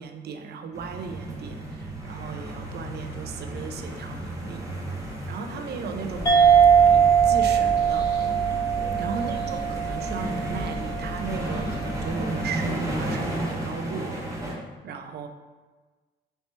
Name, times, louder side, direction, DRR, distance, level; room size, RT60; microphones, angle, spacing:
voice 1, 0.0-4.6 5.3-6.4 6.8-8.1 9.0-15.3, right 5 dB, 55° right, 6 dB, 0.5 m, -36 dB
sound 1, 0.7-14.5, right 1 dB, 15° right, 0.9 m, -33 dB
sound 2, 6.1-12.1, right 1 dB, 50° left, 0.9 m, -37 dB
sound 3, 6.3-11.2, right 7 dB, 20° left, 0.5 m, -21 dB
4.3 x 2.9 x 3.2 m, 1.3 s
cardioid pair, 90°, 20 cm